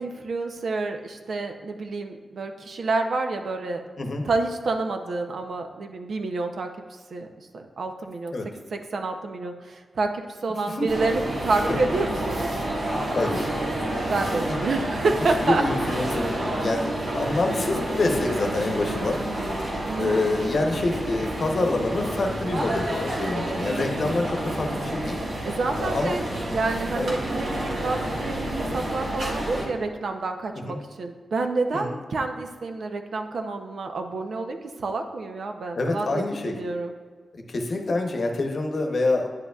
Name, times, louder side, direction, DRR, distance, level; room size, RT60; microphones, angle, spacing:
voice 1, 0.0-3.8 4.3-6.7 7.1-7.3 7.5-8.3 8.7-12.5 14.1-15.6 19.9-20.3 25.4-26.2 26.5-36.9, right 3 dB, 70° right, 5 dB, 0.6 m, -28 dB
sound 1, 10.9-29.7, right 1 dB, 85° right, 1.7 m, -29 dB
voice 2, 12.6-13.5 15.4-25.2 25.8-26.2 26.9-27.1 30.6-30.8 31.7-32.0 35.7-36.5 37.3-39.3, left 2 dB, 50° left, 3 dB, 0.9 m, -27 dB
9.7 x 7.9 x 2.4 m, 1.5 s
wide cardioid pair, 155°, 0 cm